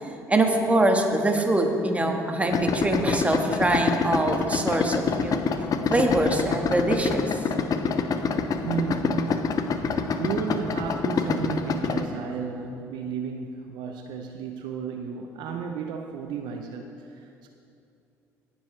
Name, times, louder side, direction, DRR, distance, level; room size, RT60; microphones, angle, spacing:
voice 1, 0.0-5.4 5.9-7.4, right 1 dB, 15° right, 3 dB, 1.6 m, -24 dB
Idling, 2.5-12.1, left 5 dB, 50° left, 0.7 m, -27 dB
voice 2, 8.6-9.6 9.9-17.5, right 6 dB, 70° right, 4 dB, 0.6 m, -33 dB
18.5 x 7.1 x 3.3 m, 2.7 s
hypercardioid pair, 60°, 8 cm